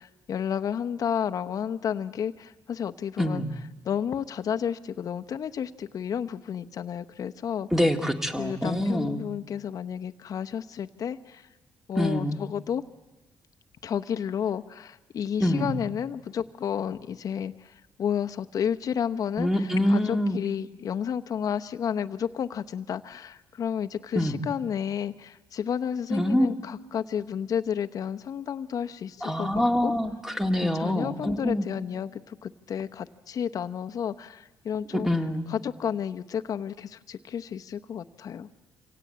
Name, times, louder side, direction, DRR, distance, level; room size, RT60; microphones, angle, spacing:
voice 1, 0.0-3.4 3.8-7.7 8.4-11.5 11.9-12.8 13.8-29.9 30.7-35.1 35.5-38.5, left 8 dB, 55° left, 9 dB, 0.9 m, -31 dB
voice 2, 3.2-3.5 7.7-9.3 12.0-12.4 15.4-15.8 19.4-20.4 24.2-24.4 26.1-26.5 29.2-31.7 34.9-35.4, equal, 5° right, 5 dB, 2.0 m, -25 dB
25.5 x 17.5 x 8.7 m, 1.1 s
cardioid pair, 90°, 7 cm